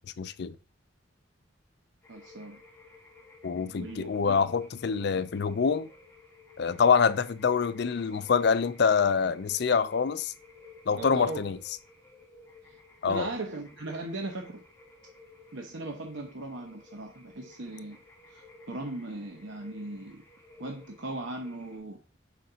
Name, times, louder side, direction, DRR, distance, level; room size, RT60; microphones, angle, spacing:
voice 1, 0.2-0.6 3.4-5.9 6.6-10.3 10.9-11.6 13.0-13.3, left 5 dB, 60° left, 0.4 m, -25 dB
sound 1, 2.0-21.8, left 3 dB, 15° left, 2.0 m, -54 dB
voice 2, 2.1-2.6 3.8-4.4 11.0-11.5 12.6-12.8 13.1-14.6 15.5-18.0 18.3-20.2 20.6-22.0, right 2 dB, 80° right, 0.9 m, -38 dB
5.2 x 3.8 x 5.6 m
head